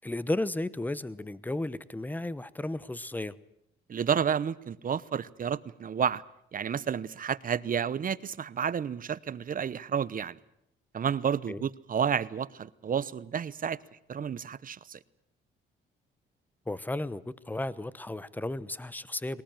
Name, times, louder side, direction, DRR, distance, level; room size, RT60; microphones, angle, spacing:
voice 1, 0.0-3.4 11.5-11.7 16.7-19.4, left 2 dB, 10° left, 1.0 m, -34 dB
voice 2, 3.9-6.2 6.5-10.4 10.9-13.8 14.1-15.0, right 7 dB, 45° right, 0.9 m, -31 dB
22.0 x 19.0 x 9.2 m
cardioid pair, 90°, 20 cm